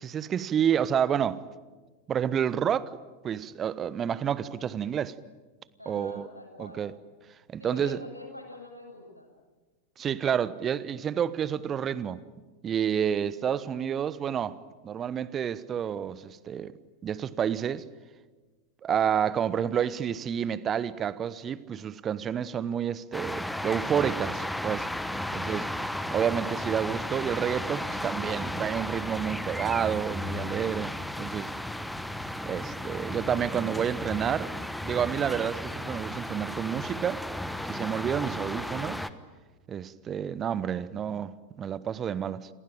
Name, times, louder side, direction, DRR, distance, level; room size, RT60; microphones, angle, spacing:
voice 1, 0.0-1.4 2.1-2.9 3.2-5.1 5.9-6.3 6.6-6.9 7.5-8.0 10.0-12.2 12.6-14.6 14.8-16.7 17.0-17.8 18.8-24.9 25.3-25.7 26.1-31.5 32.5-34.5 34.8-37.2 37.7-39.1 39.7-42.5, right 8 dB, 25° right, 1.1 m, -29 dB
voice 2, 5.8-6.9 7.6-9.3, left 2 dB, 90° left, 7.1 m, -45 dB
sound 1, 23.1-39.1, left 1 dB, ahead, 1.2 m, -34 dB
29.0 x 23.0 x 9.1 m
figure-of-eight pair, 90°, 0 cm